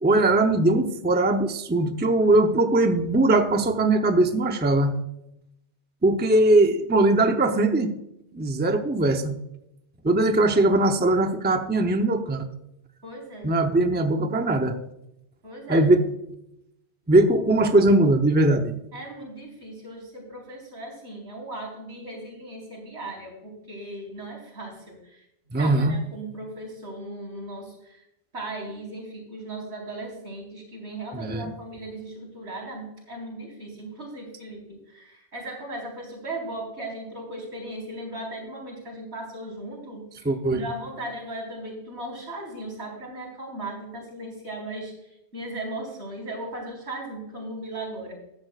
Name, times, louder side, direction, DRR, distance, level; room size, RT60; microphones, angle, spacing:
voice 1, 0.0-4.9 6.0-8.0 8.3-9.3 10.0-12.5 13.4-14.8 15.7-16.0 17.1-18.7 25.5-26.0 31.1-31.5 40.2-40.7, right 2 dB, 10° right, 6 dB, 0.6 m, -20 dB
voice 2, 13.0-13.5 15.4-15.9 18.9-25.2 25.5-28.0 28.3-48.1, right 1 dB, 80° right, -1 dB, 4.5 m, -37 dB
14.5 x 10.5 x 2.4 m, 0.81 s
omnidirectional pair, 1.1 m